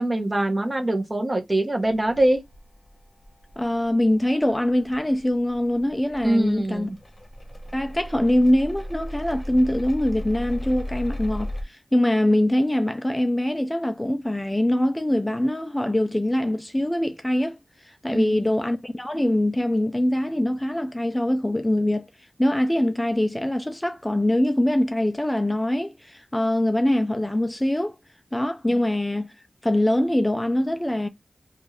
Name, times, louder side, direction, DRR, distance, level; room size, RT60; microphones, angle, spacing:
voice 1, 0.0-2.4 6.2-7.0 18.1-18.5 28.7-28.8, right 1 dB, 35° right, 0.8 m, -23 dB
sound 1, 1.8-11.6, left 1 dB, 30° left, 0.8 m, -37 dB
voice 2, 3.6-6.9 7.7-17.6 17.8-22.1 22.4-28.0 28.3-29.3 29.6-31.1, left 1 dB, 15° left, 0.3 m, -23 dB
2.6 x 2.3 x 3.1 m
cardioid pair, 45°, 0 cm